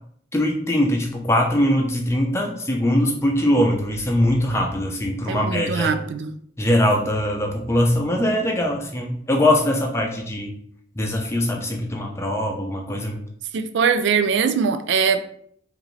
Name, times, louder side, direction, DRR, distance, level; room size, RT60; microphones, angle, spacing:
voice 1, 0.3-5.9 6.6-10.5 11.0-13.2, left 1 dB, 15° left, 0.6 m, -21 dB
voice 2, 5.3-6.3 13.5-15.3, right 6 dB, 80° right, 0.4 m, -21 dB
5.0 x 2.6 x 3.2 m
head